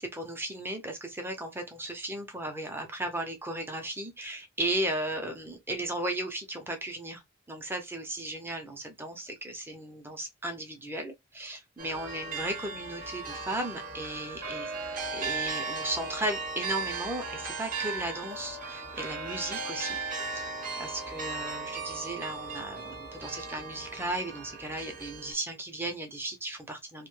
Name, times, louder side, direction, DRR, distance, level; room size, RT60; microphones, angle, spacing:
voice 1, 0.0-7.2 7.5-14.7 15.1-20.0 20.3-20.5 20.8-27.1, right 1 dB, 10° right, 0.5 m, -35 dB
sound 1, 11.8-25.3, right 4 dB, 40° right, 0.7 m, -37 dB
2.6 x 2.1 x 3.0 m
head